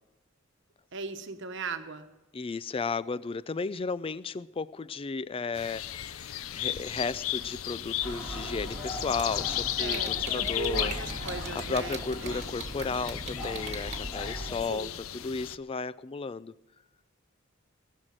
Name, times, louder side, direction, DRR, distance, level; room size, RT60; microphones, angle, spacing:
voice 1, 0.9-2.1 9.3-9.4 9.8-12.4 14.7-14.9, right 3 dB, 60° right, 1.2 m, -38 dB
voice 2, 2.3-10.9 11.3-16.5, left 4 dB, 25° left, 0.4 m, -34 dB
sound 1, 5.5-15.6, left 12 dB, 80° left, 0.5 m, -35 dB
sound 2, 8.0-14.6, equal, 5° left, 3.8 m, -39 dB
sound 3, 9.0-14.0, right 5 dB, 35° right, 1.7 m, -40 dB
19.5 x 6.5 x 7.5 m
head